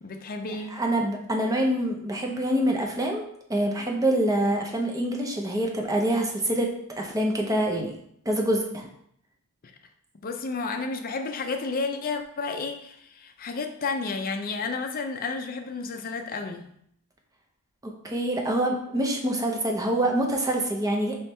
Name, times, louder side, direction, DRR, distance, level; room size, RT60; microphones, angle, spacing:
voice 1, 0.0-0.7 10.2-16.7, left 4 dB, 40° left, 5 dB, 0.4 m, -31 dB
voice 2, 0.7-6.7 7.0-7.9 8.3-8.9 17.8-21.2, right 1 dB, 15° right, 1 dB, 0.6 m, -26 dB
4.4 x 3.1 x 3.3 m, 0.71 s
head